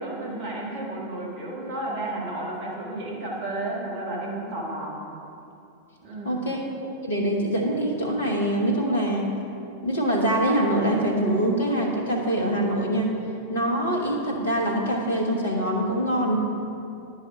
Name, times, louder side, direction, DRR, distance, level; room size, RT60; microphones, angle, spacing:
voice 1, 0.0-5.0 6.0-6.4, right 2 dB, 45° right, -4 dB, 1.5 m, -32 dB
voice 2, 6.2-9.4 9.8-13.1 13.5-16.4, right 1 dB, 65° left, 0 dB, 1.1 m, -24 dB
10.0 x 4.7 x 4.6 m, 2.6 s
figure-of-eight pair, 90°, 0 cm